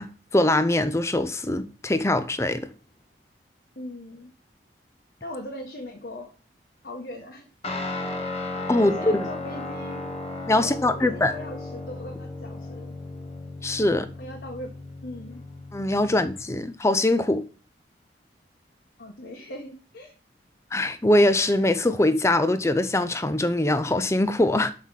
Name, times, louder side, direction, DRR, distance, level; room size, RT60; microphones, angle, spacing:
voice 1, 0.0-2.7 8.7-9.2 10.5-11.3 13.6-14.1 15.7-17.4 20.7-24.7, left 1 dB, 15° left, 0.5 m, -22 dB
voice 2, 3.7-4.3 5.2-6.3 6.8-7.5 8.8-10.0 10.6-12.9 14.2-14.7 15.0-15.4 16.1-16.2 19.0-20.1, left 1 dB, 65° left, 1.5 m, -39 dB
Guitar, 7.6-16.4, left 2 dB, 35° left, 1.1 m, -35 dB
5.7 x 5.5 x 6.5 m
head